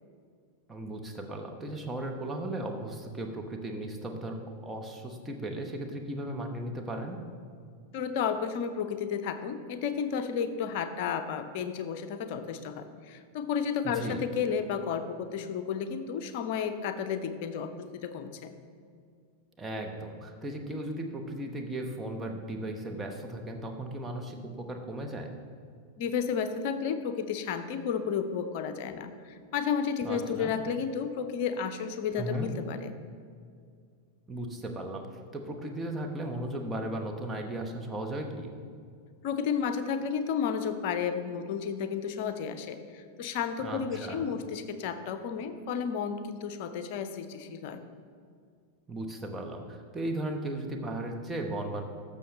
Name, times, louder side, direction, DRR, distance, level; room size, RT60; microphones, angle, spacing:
voice 1, 0.7-7.2 13.8-14.2 19.6-25.3 30.0-30.5 32.1-32.5 34.3-35.1 35.3-38.5 43.6-44.3 48.9-51.8, right 1 dB, 10° right, 2 dB, 1.1 m, -36 dB
voice 2, 7.9-18.5 26.0-32.9 39.2-47.8, left 7 dB, 45° left, 9 dB, 0.6 m, -32 dB
12.5 x 6.8 x 3.2 m, 2.2 s
figure-of-eight pair, 90°, 0 cm